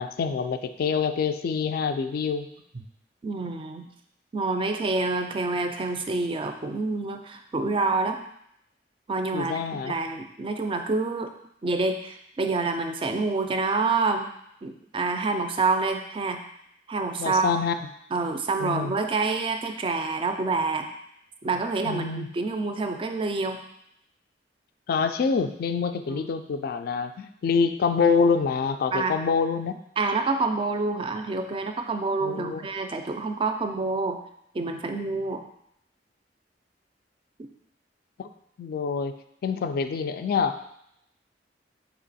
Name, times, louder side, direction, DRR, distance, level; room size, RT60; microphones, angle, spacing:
voice 1, 0.0-2.5 9.3-9.9 17.2-17.8 18.6-18.9 21.8-22.3 24.9-29.8 32.2-32.7 38.2-38.3 38.6-39.2 39.4-40.6, left 5 dB, 55° left, 10 dB, 0.3 m, -26 dB
voice 2, 3.2-3.9 4.3-8.2 9.1-11.3 11.6-14.3 14.6-16.4 16.9-17.6 18.1-20.9 21.4-23.6 26.1-26.3 28.9-29.1 30.0-34.2 34.5-35.4, right 3 dB, 30° right, 6 dB, 0.4 m, -27 dB
4.6 x 2.9 x 4.1 m, 0.75 s
head